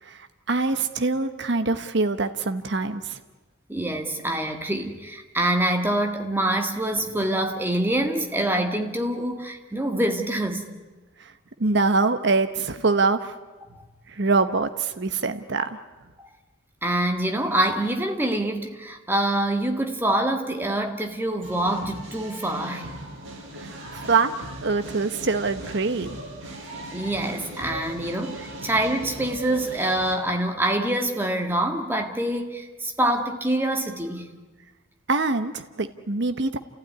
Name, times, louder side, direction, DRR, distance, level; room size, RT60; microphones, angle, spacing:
voice 1, 0.0-3.2 11.2-11.3 11.6-13.4 14.1-15.8 23.6-24.3 24.6-26.2 35.1-36.6, right 3 dB, 55° right, 9 dB, 0.9 m, -24 dB
voice 2, 3.7-10.6 13.7-13.8 16.8-22.9 26.9-34.3, right 1 dB, 10° right, 4 dB, 1.8 m, -25 dB
sound 1, 21.4-30.2, right 1 dB, 70° right, 5.1 m, -39 dB
29.0 x 15.5 x 9.6 m, 1.2 s
head